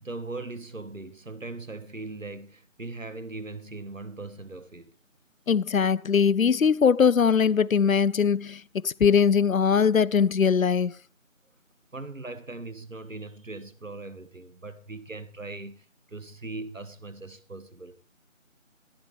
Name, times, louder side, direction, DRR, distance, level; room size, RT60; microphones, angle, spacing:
voice 1, 0.0-4.9 11.9-17.9, right 2 dB, 75° right, 1.5 m, -39 dB
voice 2, 5.5-10.9, left 6 dB, 85° left, 0.6 m, -21 dB
14.5 x 13.0 x 3.4 m
figure-of-eight pair, 175°, 40 cm